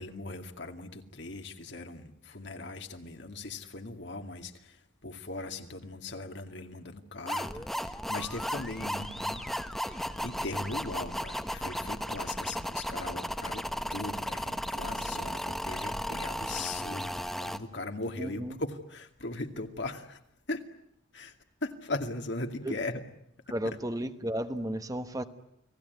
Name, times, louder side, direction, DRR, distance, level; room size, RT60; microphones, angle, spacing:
voice 1, 0.0-9.6 9.8-13.6 13.9-20.2 20.5-20.6 21.1-21.3 21.6-23.0, left 2 dB, 65° left, 5 dB, 2.3 m, -39 dB
sound 1, 7.3-17.6, equal, ahead, 1.2 m, -35 dB
voice 2, 18.2-18.6 22.6-22.7 23.5-25.2, right 1 dB, 20° right, 9 dB, 1.1 m, -33 dB
30.0 x 19.5 x 9.4 m, 0.75 s
head